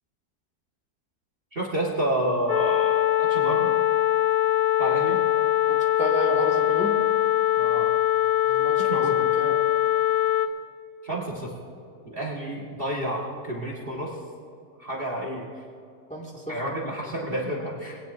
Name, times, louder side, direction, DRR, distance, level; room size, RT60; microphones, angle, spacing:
voice 1, 1.5-3.7 4.8-5.2 7.6-7.9 8.8-9.3 11.0-11.5 12.0-14.2 14.8-15.5 16.5-18.0, right 1 dB, 35° right, -2 dB, 1.7 m, -30 dB
sound 1, 2.5-10.5, left 13 dB, 65° left, 0.9 m, -22 dB
voice 2, 5.7-6.9 8.5-9.0 9.4-9.5 16.1-16.6, right 1 dB, 5° left, -2 dB, 1.9 m, -31 dB
21.5 x 17.5 x 2.6 m, 2.5 s
omnidirectional pair, 1.9 m